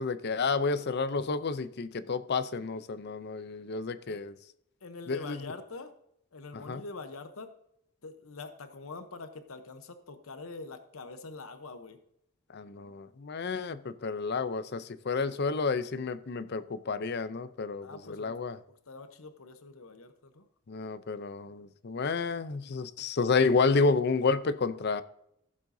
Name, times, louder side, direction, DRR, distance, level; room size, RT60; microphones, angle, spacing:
voice 1, 0.0-4.4 5.1-5.4 6.5-6.8 12.5-18.6 20.7-25.0, left 4 dB, 50° left, 0.6 m, -30 dB
voice 2, 4.8-5.9 6.3-7.5 8.0-12.0 17.8-18.3 18.7-20.4, left 3 dB, 80° left, 0.9 m, -44 dB
15.5 x 7.5 x 2.7 m
head